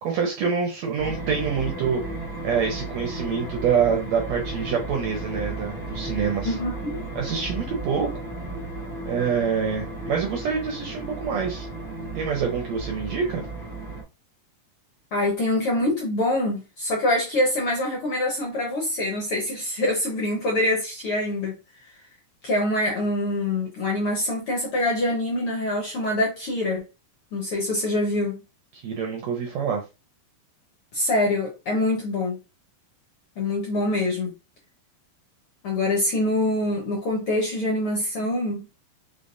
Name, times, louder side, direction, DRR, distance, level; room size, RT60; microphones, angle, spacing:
voice 1, 0.0-2.0 2.4-6.6 7.2-8.1 9.1-11.7 12.2-13.4 28.7-29.8, right 6 dB, 70° right, 1.8 m, -26 dB
sound 1, 1.0-14.0, right 2 dB, 15° left, 1.7 m, -34 dB
voice 2, 6.4-7.0 15.1-21.5 22.4-26.8 27.3-28.4 30.9-32.4 33.4-34.3 35.6-38.6, left 1 dB, 60° left, 1.5 m, -25 dB
5.1 x 3.8 x 2.6 m
omnidirectional pair, 3.9 m